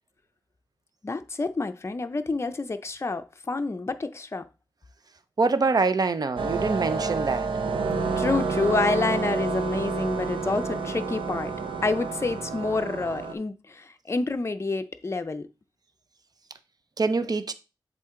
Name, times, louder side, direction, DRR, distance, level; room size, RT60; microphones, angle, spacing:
voice 1, 1.0-4.5 8.2-11.5 11.8-15.5, left 3 dB, 35° left, 0.5 m, -28 dB
voice 2, 5.4-7.5 17.0-17.5, right 4 dB, 50° right, 0.6 m, -24 dB
sound 1, 6.4-13.3, right 4 dB, 90° right, 0.7 m, -29 dB
7.5 x 3.7 x 3.7 m
wide cardioid pair, 90°, 8 cm